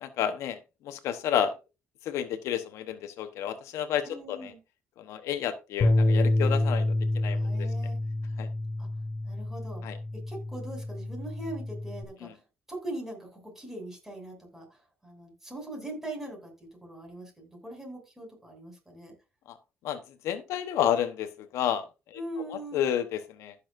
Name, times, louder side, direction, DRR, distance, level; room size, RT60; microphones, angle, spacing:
voice 1, 0.0-1.5 2.0-4.5 5.0-7.7 8.4-8.5 9.8-10.0 12.2-12.3 19.5-19.6 19.8-21.8 22.1-22.2 22.5-23.5, left 10 dB, 85° left, 10 dB, 1.1 m, -31 dB
voice 2, 4.0-4.6 7.3-8.0 8.8-8.9 9.2-9.8 10.1-12.4 12.7-16.5 16.8-19.1 22.1-22.9, right 1 dB, 5° right, 0 dB, 7.0 m, -41 dB
Bass guitar, 5.8-12.0, left 2 dB, 45° left, 2.0 m, -28 dB
15.0 x 7.2 x 2.6 m, 0.28 s
cardioid pair, 105°, 5 cm